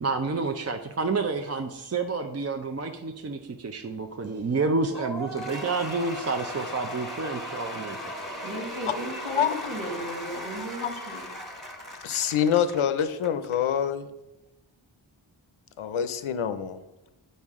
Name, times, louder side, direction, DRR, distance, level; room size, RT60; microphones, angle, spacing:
voice 1, 0.0-8.0, right 4 dB, 35° right, 5 dB, 0.5 m, -29 dB
Cheering / Applause / Crowd, 4.9-13.6, equal, ahead, 1.5 m, -37 dB
voice 2, 8.4-11.3, right 1 dB, 85° right, -2 dB, 1.6 m, -35 dB
voice 3, 12.0-14.1 15.8-16.8, left 8 dB, 85° left, 11 dB, 0.6 m, -25 dB
8.5 x 5.4 x 3.6 m, 0.97 s
wide cardioid pair, 55°, 48 cm